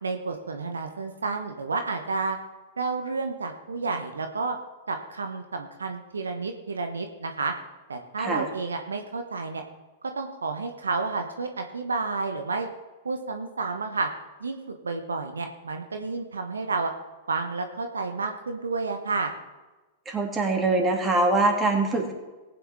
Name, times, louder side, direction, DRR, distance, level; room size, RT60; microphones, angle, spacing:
voice 1, 0.0-2.4 2.8-4.6 4.9-7.5 7.9-9.6 10.2-12.7 13.0-14.1 14.4-14.6 14.8-16.9 17.3-19.3, right 4 dB, 80° right, 5 dB, 1.0 m, -30 dB
voice 2, 20.1-22.1, right 2 dB, 20° right, 2 dB, 2.5 m, -23 dB
19.0 x 9.2 x 3.6 m, 1.2 s
figure-of-eight pair, 100°, 0 cm